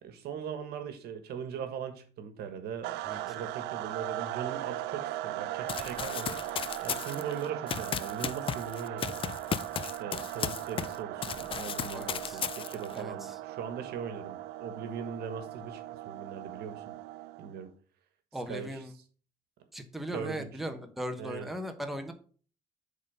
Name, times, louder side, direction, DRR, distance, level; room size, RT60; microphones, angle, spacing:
voice 1, 0.0-9.2 9.8-16.9 17.4-17.7 18.5-18.8 20.1-20.5 21.2-21.5, right 7 dB, 70° right, 9 dB, 1.3 m, -40 dB
sound 1, 2.8-17.6, right 14 dB, 90° right, 0.5 m, -39 dB
voice 2, 3.0-3.5 11.9-12.4 12.9-13.4 18.3-18.9 19.7-22.1, equal, ahead, 5 dB, 1.0 m, -38 dB
Run, 5.7-11.0 11.2-13.0, left 8 dB, 30° left, 0.4 m, -35 dB
7.4 x 3.8 x 5.5 m, 0.42 s
cardioid pair, 110°, 17 cm